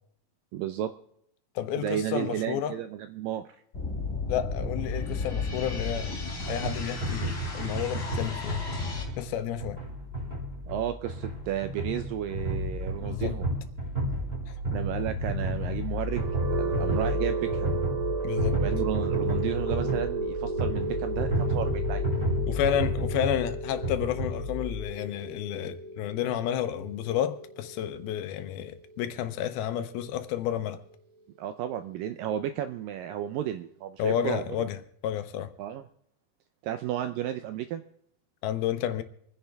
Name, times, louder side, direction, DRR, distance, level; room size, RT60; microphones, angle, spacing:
voice 1, 0.5-0.9 1.8-3.6 10.7-13.5 14.7-16.2 16.6-17.7 18.6-22.1 31.4-34.4 35.6-35.8 36.6-37.8, right 11 dB, 80° right, 2.0 m, -33 dB
voice 2, 1.6-2.7 4.3-6.1 6.5-8.6 9.2-9.8 13.0-13.4 18.2-18.6 22.5-30.8 34.0-35.5 38.4-39.0, left 10 dB, 75° left, 2.6 m, -31 dB
sound 1, 3.7-9.0, left 3 dB, 25° left, 3.1 m, -33 dB
sound 2, 6.5-24.8, equal, 15° right, 4.9 m, -31 dB
sound 3, 16.0-29.9, right 3 dB, 60° right, 1.9 m, -34 dB
26.5 x 10.0 x 3.5 m
omnidirectional pair, 4.6 m